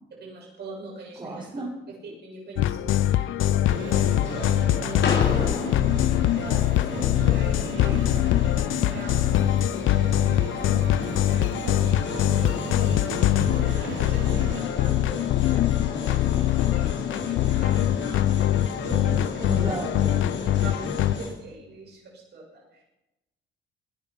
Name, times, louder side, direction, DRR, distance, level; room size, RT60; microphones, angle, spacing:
voice 1, 0.2-1.4 1.9-2.0 2.2-8.2 8.6-19.8 20.6-22.8, right 3 dB, 55° right, -3 dB, 7.6 m, -43 dB
voice 2, 1.2-1.7 7.8-8.2 19.4-20.3, right 2 dB, 25° right, -2 dB, 5.9 m, -34 dB
sound 1, 2.6-21.1, left 13 dB, 80° left, 0.6 m, -23 dB
sound 2, 3.6-21.3, left 4 dB, 65° left, 3.8 m, -34 dB
sound 3, 3.7-14.6, right 13 dB, 80° right, 0.6 m, -38 dB
20.0 x 12.0 x 5.6 m, 0.99 s
cardioid pair, 90°, 20 cm